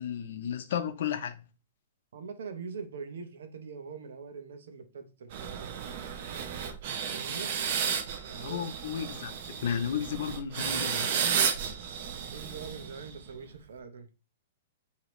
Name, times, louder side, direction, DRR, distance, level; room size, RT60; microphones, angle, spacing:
voice 1, 0.0-1.4 8.4-11.1, left 8 dB, 65° left, 0.6 m, -33 dB
voice 2, 2.1-5.7 7.1-7.5 8.3-8.6 12.3-14.1, right 5 dB, 85° right, 0.8 m, -43 dB
sound 1, 5.3-13.3, right 7 dB, 50° right, 0.7 m, -33 dB
4.8 x 2.8 x 3.1 m
hypercardioid pair, 160°, 0 cm